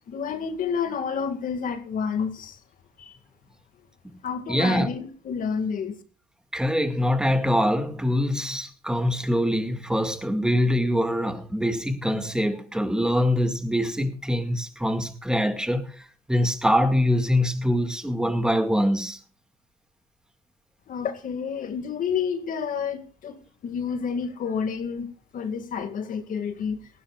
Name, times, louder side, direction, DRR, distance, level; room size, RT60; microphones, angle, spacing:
voice 1, 0.1-2.6 3.0-3.2 4.2-5.9 20.9-26.8, left 6 dB, 55° left, 2.1 m, -29 dB
voice 2, 4.5-4.9 6.5-19.2, equal, 5° right, 2.0 m, -24 dB
18.5 x 16.0 x 2.4 m
cardioid pair, 110°, 17 cm